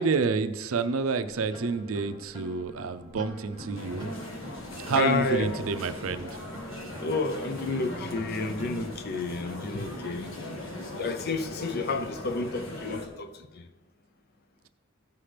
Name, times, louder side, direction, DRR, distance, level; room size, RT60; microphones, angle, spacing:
voice 1, 0.0-4.1 4.8-6.3, right 4 dB, 85° right, 0.5 m, -28 dB
sound 1, 1.3-8.9, equal, 25° left, 2.6 m, -44 dB
sound 2, 3.7-13.1, left 1 dB, 70° left, 1.4 m, -40 dB
voice 2, 4.9-5.7 7.0-10.3 10.9-13.3 13.6-13.7, left 3 dB, 50° left, 0.6 m, -30 dB
15.5 x 5.8 x 3.3 m
head